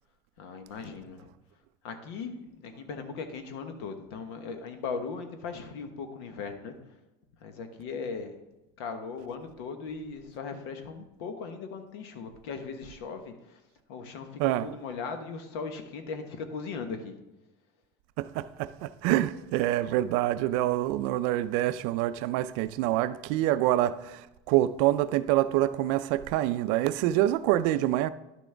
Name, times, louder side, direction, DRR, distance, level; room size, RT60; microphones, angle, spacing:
voice 1, 0.4-1.3 1.8-6.7 7.4-8.4 8.8-13.6 13.9-17.1, left 5 dB, 80° left, 1.2 m, -38 dB
voice 2, 18.2-28.1, right 14 dB, 65° right, 0.4 m, -26 dB
11.0 x 6.2 x 3.4 m
cardioid pair, 155°, 13 cm